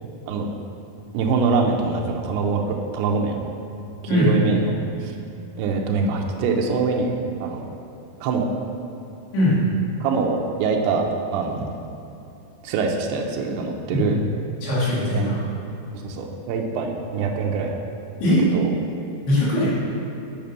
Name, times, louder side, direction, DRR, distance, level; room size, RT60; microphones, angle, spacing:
voice 1, 1.1-3.4 4.1-4.7 5.0-5.2 5.6-7.2 7.4-7.7 8.2-8.5 10.0-11.0 11.3-11.8 12.6-14.2 15.1-15.3 16.0-17.8 18.5-18.7, right 4 dB, 90° right, 1 dB, 2.8 m, -24 dB
voice 2, 4.1-4.5 9.3-9.6 13.9-14.1 14.6-15.4 18.2-18.5 19.3-19.7, left 1 dB, 75° left, -9 dB, 4.3 m, -20 dB
9.0 x 5.1 x 5.4 m, 2.8 s
omnidirectional pair, 4.7 m